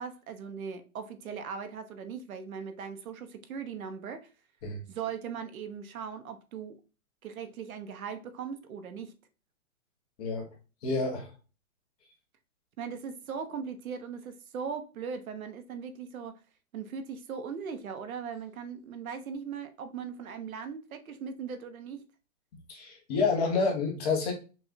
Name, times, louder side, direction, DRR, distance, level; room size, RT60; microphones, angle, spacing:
voice 1, 0.0-4.3 4.9-6.8 7.2-9.1 12.8-16.4 16.7-22.0, right 6 dB, 75° right, 8 dB, 0.9 m, -39 dB
voice 2, 10.8-11.3 22.7-24.3, left 4 dB, 30° left, -1 dB, 1.0 m, -28 dB
5.8 x 2.4 x 2.7 m, 0.34 s
hypercardioid pair, 160°, 42 cm